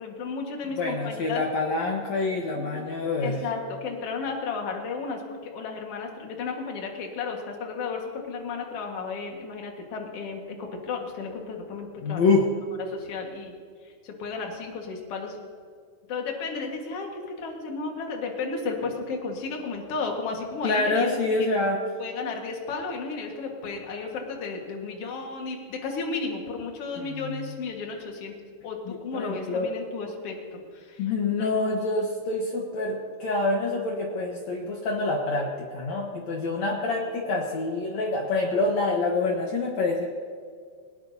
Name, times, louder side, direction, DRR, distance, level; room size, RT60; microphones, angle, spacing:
voice 1, 0.0-1.4 2.6-12.4 12.9-13.5 13.8-15.4 16.1-21.1 21.4-21.5 22.0-28.4 28.6-31.0 31.4-31.5 36.8-36.9, left 4 dB, 55° left, 1 dB, 1.8 m, -33 dB
voice 2, 0.8-3.4 12.0-12.5 20.6-21.8 27.0-27.5 28.9-29.7 31.0-40.1, left 3 dB, 75° left, 0 dB, 1.6 m, -26 dB
19.5 x 19.0 x 2.8 m, 2.1 s
omnidirectional pair, 4.9 m